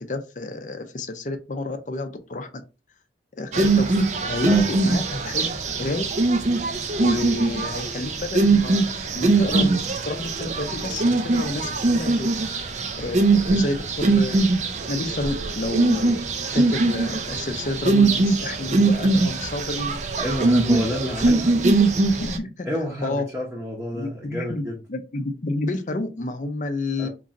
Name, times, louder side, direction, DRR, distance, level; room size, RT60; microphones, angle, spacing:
voice 1, 0.0-2.5 3.4-6.0 7.0-12.3 12.9-14.6 14.9-16.1 16.5-20.0 20.6-22.7 23.0-23.3 23.9-27.1, left 2 dB, 45° left, 7 dB, 0.5 m, -30 dB
sound 1, 3.5-22.4, right 3 dB, 40° right, 0.4 m, -21 dB
voice 2, 20.2-21.5 22.6-24.8 27.0-27.1, equal, 10° right, -4 dB, 0.8 m, -29 dB
3.8 x 3.0 x 2.5 m, 0.30 s
head